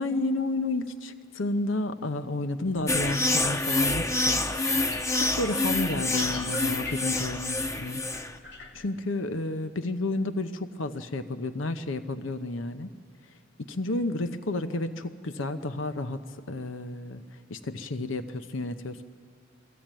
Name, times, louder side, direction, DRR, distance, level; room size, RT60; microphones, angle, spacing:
voice 1, 0.0-4.4 5.1-8.0 8.7-12.9 13.6-19.0, left 2 dB, 85° left, 10 dB, 0.8 m, -31 dB
sound 1, 2.7-8.9, left 3 dB, 65° left, 1.9 m, -46 dB
sound 2, 2.9-8.4, left 2 dB, 15° left, 0.6 m, -27 dB
22.0 x 15.0 x 9.0 m, 2.1 s
head